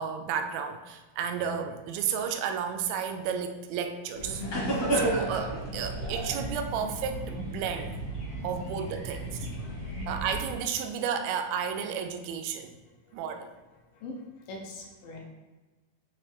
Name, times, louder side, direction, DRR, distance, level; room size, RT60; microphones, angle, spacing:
voice 1, 0.0-4.4 4.7-8.0 8.4-9.4 10.1-12.7 13.1-13.5, right 7 dB, 85° right, 6 dB, 2.3 m, -32 dB
sound 1, 4.1-10.5, right 1 dB, 45° left, 1.1 m, -33 dB
voice 2, 9.4-9.9 13.0-13.2 13.9-15.3, left 2 dB, 75° left, 0 dB, 2.5 m, -43 dB
8.7 x 3.2 x 3.4 m, 1.2 s
omnidirectional pair, 4.3 m